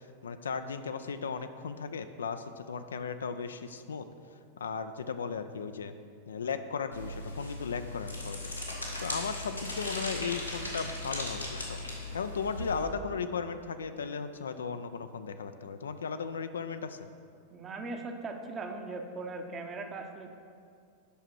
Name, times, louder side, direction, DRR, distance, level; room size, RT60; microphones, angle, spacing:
voice 1, 0.2-4.1 4.6-5.9 6.3-8.5 9.0-11.8 12.1-17.1, left 5 dB, 70° left, 9 dB, 0.4 m, -36 dB
sound 1, 6.9-12.8, left 2 dB, 90° left, 1.6 m, -38 dB
voice 2, 17.5-20.3, right 3 dB, 25° right, 5 dB, 0.9 m, -39 dB
8.4 x 5.8 x 6.1 m, 2.3 s
figure-of-eight pair, 90°, 0 cm